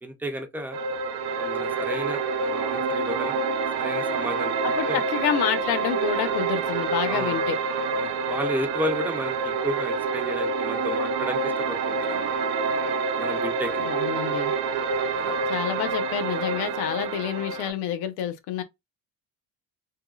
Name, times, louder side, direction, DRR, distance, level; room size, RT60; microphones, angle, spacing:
voice 1, 0.0-0.8 1.3-3.4 3.8-4.6 4.9-5.0 7.1-7.4 7.9-12.3 13.2-13.8 15.1-15.3, equal, 5° right, 0.4 m, -33 dB
sound 1, 0.7-17.7, right 4 dB, 80° right, 0.8 m, -27 dB
voice 2, 4.6-7.6 13.8-14.5 15.5-18.6, left 9 dB, 85° left, 0.8 m, -28 dB
3.6 x 2.2 x 2.2 m
cardioid pair, 160°, 38 cm